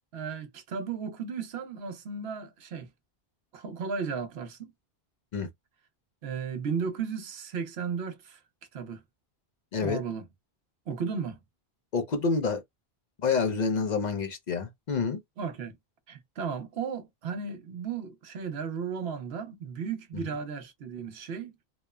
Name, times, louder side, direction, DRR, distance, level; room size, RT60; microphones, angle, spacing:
voice 1, 0.1-2.9 3.5-4.7 6.2-8.4 8.7-9.0 9.8-10.2 10.9-11.4 15.4-15.8 16.1-21.5, right 6 dB, 80° right, 0.9 m, -35 dB
voice 2, 11.9-12.6 13.2-15.2, left 5 dB, 50° left, 0.6 m, -28 dB
2.9 x 2.0 x 2.2 m
omnidirectional pair, 1.1 m